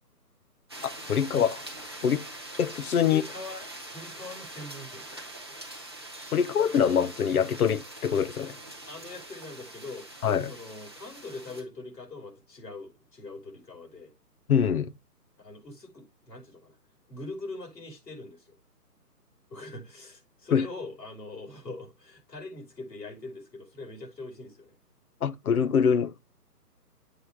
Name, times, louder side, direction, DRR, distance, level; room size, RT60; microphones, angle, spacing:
sound 1, 0.7-11.6, right 1 dB, 15° right, 0.6 m, -43 dB
voice 1, 0.8-1.5 2.0-2.2 2.6-3.2 6.3-8.6 10.2-10.5 14.5-14.9 20.5-20.7 25.2-26.2, left 7 dB, 65° left, 0.8 m, -24 dB
voice 2, 3.0-3.7 3.9-5.5 8.9-10.1 10.5-14.1 15.4-16.8 17.1-18.6 19.5-24.7, left 2 dB, 80° left, 5.5 m, -42 dB
8.1 x 5.7 x 3.4 m
hypercardioid pair, 155°, 49 cm